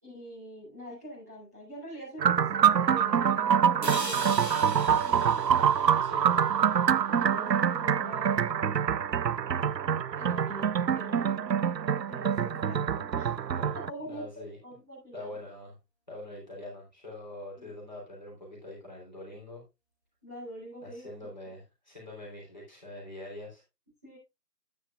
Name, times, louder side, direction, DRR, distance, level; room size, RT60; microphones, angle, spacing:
voice 1, 0.0-5.4 7.1-8.9 10.1-11.5 11.9-13.5 13.7-14.3 14.6-15.4 17.6-17.7 20.2-21.1 21.4-21.5 24.0-24.2, equal, 10° right, -12 dB, 3.5 m, -44 dB
sound 1, 2.2-13.9, right 8 dB, 85° right, 0.6 m, -26 dB
sound 2, 3.8-7.8, right 1 dB, 40° right, 2.3 m, -41 dB
voice 2, 6.0-6.6 13.5-13.7 14.1-14.6 15.1-15.8 16.1-19.6 20.8-23.6, left 1 dB, 25° left, -4 dB, 3.3 m, -44 dB
11.5 x 9.4 x 2.4 m, 0.24 s
figure-of-eight pair, 175°, 49 cm